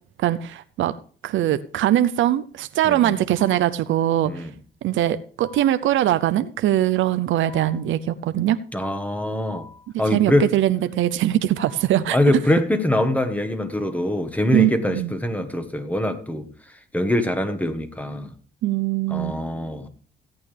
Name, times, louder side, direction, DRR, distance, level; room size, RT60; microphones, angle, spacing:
voice 1, 0.2-0.9 1.2-4.4 4.8-8.6 10.1-12.2 14.5-15.1 18.6-19.3, right 12 dB, 80° right, 0.7 m, -21 dB
voice 2, 2.8-3.2 4.2-4.5 8.7-9.7 10.0-10.5 12.1-16.5 16.9-18.3 19.1-19.9, left 1 dB, 5° left, 1.5 m, -23 dB
sound 1, 3.4-3.9 5.4-5.9 7.5-8.0 9.5-10.0 11.6-12.1, left 2 dB, 65° left, 2.9 m, -46 dB
16.5 x 8.8 x 3.4 m
cardioid pair, 90°, 20 cm